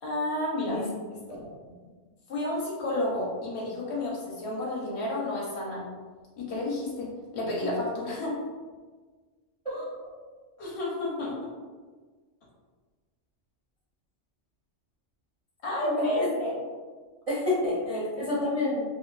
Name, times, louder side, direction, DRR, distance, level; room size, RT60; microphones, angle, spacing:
voice 1, 0.0-0.8 1.1-1.4 2.3-5.8 6.4-8.4 9.7-9.8 10.6-11.5 15.6-16.6 17.9-18.3, left 1 dB, 65° left, -5 dB, 0.9 m, -31 dB
voice 2, 15.8-16.3 17.3-18.8, left 2 dB, 45° right, -9 dB, 0.5 m, -29 dB
2.5 x 2.3 x 2.2 m, 1.4 s
omnidirectional pair, 1.3 m